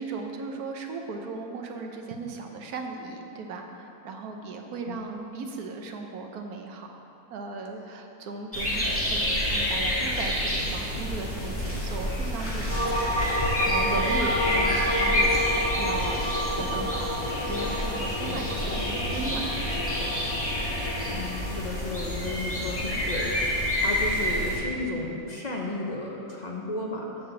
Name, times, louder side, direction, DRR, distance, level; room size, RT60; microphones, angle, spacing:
voice 1, 0.0-6.9 7.3-15.4 15.8-16.2 16.6-17.1 17.4-20.1, right 3 dB, 70° right, 3 dB, 1.3 m, -37 dB
sound 1, 8.5-24.6, equal, 10° left, 1.8 m, -28 dB
sound 2, 12.7-21.6, equal, 10° right, 0.8 m, -31 dB
sound 3, 13.1-21.2, left 5 dB, 70° left, 1.1 m, -40 dB
voice 2, 18.0-18.4 18.7-18.8 21.1-27.0, left 2 dB, 40° left, -2 dB, 0.7 m, -34 dB
7.6 x 5.6 x 7.0 m, 2.8 s
omnidirectional pair, 1.7 m